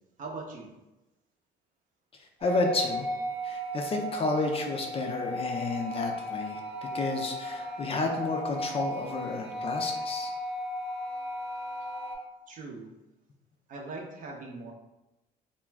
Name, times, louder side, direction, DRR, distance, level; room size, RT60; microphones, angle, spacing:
voice 1, 0.2-0.7 12.5-12.9 13.7-14.7, right 3 dB, 50° right, 0 dB, 0.6 m, -40 dB
voice 2, 2.2-3.1 3.4-6.6 6.9-10.3, left 3 dB, 35° left, 2 dB, 0.4 m, -31 dB
sound 1, 2.4-12.2, equal, 90° right, 0.9 m, -35 dB
2.4 x 2.2 x 3.2 m, 1.0 s
cardioid pair, 110°, 17 cm